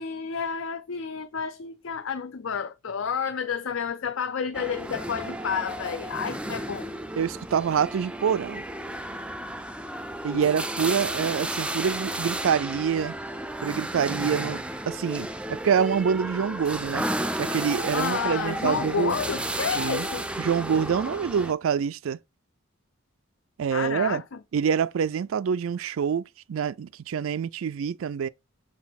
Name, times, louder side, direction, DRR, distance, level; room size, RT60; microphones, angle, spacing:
voice 1, 0.0-6.9 10.3-10.5 17.9-20.3 23.7-24.4, left 6 dB, 70° left, 0.5 m, -30 dB
sound 1, 4.5-21.5, right 1 dB, 5° right, 0.4 m, -33 dB
voice 2, 7.2-8.6 10.2-13.1 13.6-17.0 17.4-19.2 19.8-20.1 20.4-22.2 23.6-24.2 24.5-28.3, right 7 dB, 75° right, 0.4 m, -26 dB
6.2 x 4.1 x 4.1 m
head